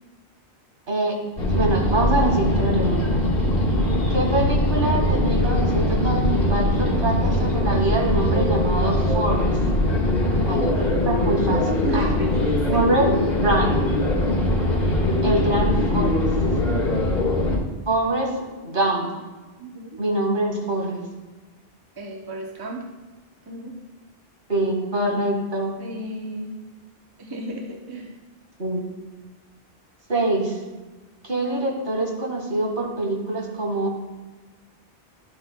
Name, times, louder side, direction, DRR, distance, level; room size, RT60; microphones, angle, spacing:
sound 1, 1.4-17.6, left 1 dB, 70° left, 1.8 m, -21 dB
voice 1, 1.5-3.2 4.1-9.6 10.5-10.7 11.0-12.1 12.7-13.1 13.4-13.8 15.2-16.2 17.9-18.3 18.6-19.1 20.0-21.0 24.5-25.7 28.6-28.9 30.1-30.6 31.2-34.0, right 2 dB, 55° right, -1 dB, 1.9 m, -24 dB
voice 2, 10.2-10.6 11.8-12.9 13.5-13.6 19.6-20.0 22.0-22.9 23.5-23.8 25.8-26.6 27.2-28.2, equal, 25° right, 1 dB, 0.7 m, -34 dB
12.0 x 7.8 x 2.2 m, 1.2 s
omnidirectional pair, 1.0 m